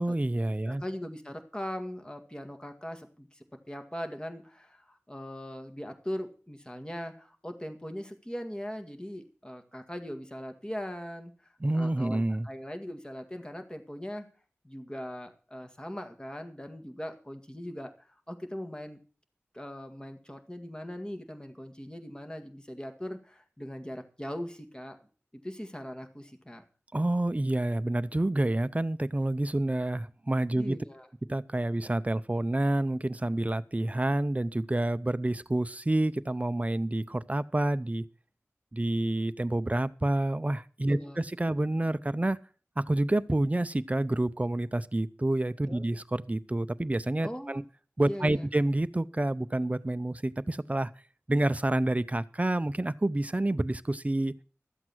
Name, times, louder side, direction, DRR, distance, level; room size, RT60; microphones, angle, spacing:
voice 1, 0.0-0.8 11.6-12.5 26.9-30.8 31.3-38.0 38.7-42.4 42.8-47.6 48.0-50.9 51.3-54.3, right 1 dB, 30° right, 15 dB, 0.6 m, -28 dB
voice 2, 0.7-14.3 14.6-19.0 19.5-25.0 25.4-26.6 30.5-31.1 40.9-41.2 45.7-45.8 47.2-47.6 48.1-48.5, equal, 15° left, 5 dB, 1.9 m, -40 dB
13.0 x 7.9 x 6.1 m, 0.38 s
wide cardioid pair, 50°, 5 cm